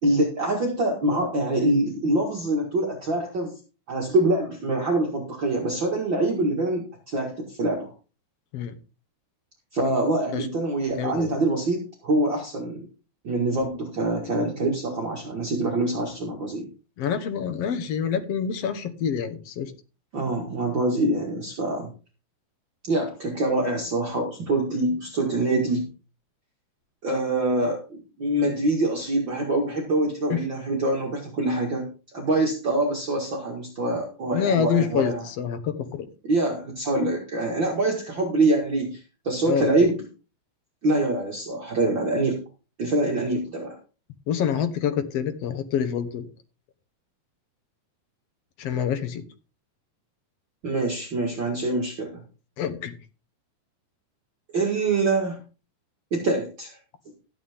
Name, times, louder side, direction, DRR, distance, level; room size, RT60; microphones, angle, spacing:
voice 1, 0.0-3.5 3.9-7.9 9.7-12.8 13.2-16.7 20.1-21.9 22.9-25.9 27.0-27.8 28.2-31.9 32.1-35.2 36.3-39.0 39.2-40.0 40.8-42.4 42.8-43.8 50.6-52.1 54.5-55.4 56.1-56.8, right 2 dB, 45° right, 0 dB, 2.3 m, -25 dB
voice 2, 11.0-11.4 17.0-19.7 30.3-30.4 34.3-36.1 39.4-39.7 44.3-46.3 48.6-49.2 52.6-52.9, left 8 dB, 60° left, 9 dB, 2.0 m, -26 dB
13.0 x 9.2 x 3.6 m, 0.34 s
omnidirectional pair, 3.5 m